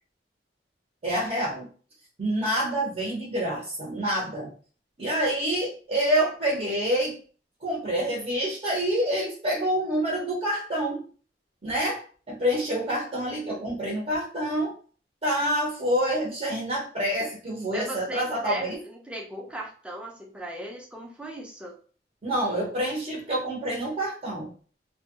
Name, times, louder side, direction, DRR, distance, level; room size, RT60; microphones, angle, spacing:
voice 1, 1.0-1.6 2.2-4.5 5.0-7.2 7.6-11.0 11.6-14.7 15.2-18.8 22.2-24.5, right 1 dB, 40° right, -3 dB, 1.0 m, -27 dB
voice 2, 17.7-21.8, right 1 dB, 5° right, -2 dB, 0.7 m, -38 dB
3.1 x 2.3 x 2.9 m, 0.40 s
head